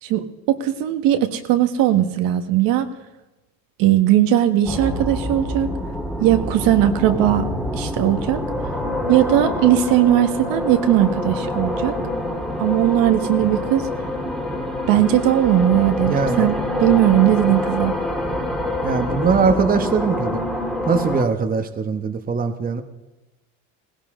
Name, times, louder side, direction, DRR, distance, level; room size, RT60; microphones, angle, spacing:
voice 1, 0.0-2.9 3.8-5.7 6.2-7.5 7.7-8.4 9.1-11.9 12.6-13.9 14.9-17.9, right 12 dB, 65° right, 7 dB, 1.5 m, -18 dB
sound 1, 4.6-21.2, left 1 dB, ahead, 1.9 m, -26 dB
voice 2, 16.1-16.4 18.8-20.4 20.9-22.8, right 5 dB, 25° right, 7 dB, 1.2 m, -21 dB
18.0 x 16.5 x 3.8 m, 1.0 s
cardioid pair, 130°, 38 cm